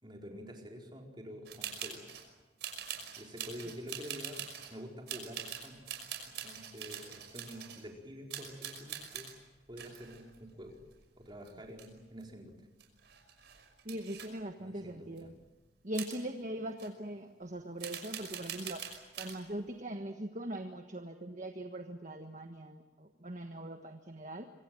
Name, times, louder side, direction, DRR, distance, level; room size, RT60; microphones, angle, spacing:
voice 1, 0.0-2.1 3.2-5.9 6.2-9.3 9.7-10.8 11.2-12.5 14.6-15.3, equal, 25° right, 0 dB, 4.5 m, -48 dB
sound 1, 1.5-2.3 2.6-4.7 5.1-7.9 8.3-9.3 9.8-11.2 11.5-12.2 12.5-12.6 12.8-14.3 15.2-15.3 15.9-16.2 16.8-16.9 17.8-19.4, right 8 dB, 60° right, 5.8 m, -43 dB
voice 2, 13.8-15.3 15.8-18.8 19.2-24.5, right 1 dB, 40° right, 5 dB, 1.4 m, -41 dB
26.0 x 24.0 x 7.8 m, 1.1 s
head